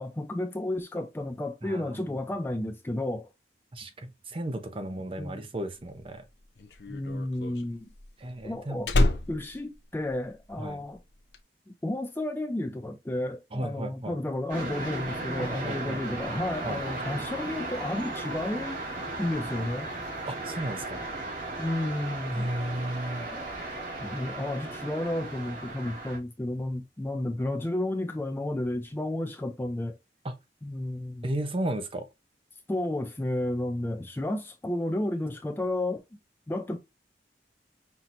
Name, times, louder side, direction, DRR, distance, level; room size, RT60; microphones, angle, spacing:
voice 1, 0.0-3.3 5.2-5.4 6.9-7.9 8.4-8.9 9.3-11.0 11.7-18.8 19.2-19.9 21.6-22.5 23.3-23.5 24.0-30.0 30.6-31.3 32.7-36.0 36.5-36.8, left 1 dB, 10° left, 0.3 m, -32 dB
voice 2, 1.6-2.2 3.7-6.2 8.2-8.9 10.6-10.8 13.5-14.2 15.4-16.0 16.6-16.8 20.3-21.0 22.3-23.3 30.2-30.3 31.2-32.1, right 1 dB, 30° right, 0.6 m, -34 dB
Slam, 5.9-10.7 10.9-11.4, left 1 dB, 70° left, 0.6 m, -28 dB
sound 1, 14.5-26.2, right 2 dB, 50° right, 1.8 m, -36 dB
5.7 x 2.8 x 2.5 m
head